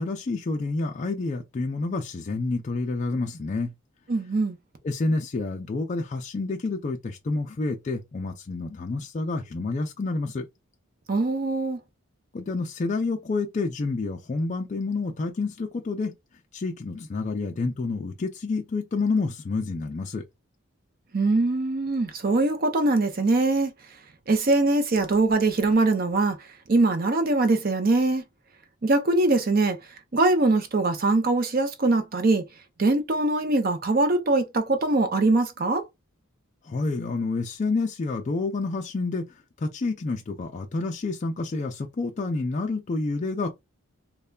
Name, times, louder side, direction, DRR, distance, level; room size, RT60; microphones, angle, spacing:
voice 1, 0.0-3.7 4.8-10.5 12.3-16.1 16.5-20.2 36.6-43.5, left 3 dB, 35° left, 0.3 m, -29 dB
voice 2, 4.1-4.6 11.1-11.8 21.1-23.7 24.3-26.4 26.7-28.3 28.8-29.8 30.1-32.4 32.8-35.8, right 2 dB, 45° right, 0.5 m, -22 dB
3.2 x 2.1 x 2.3 m
head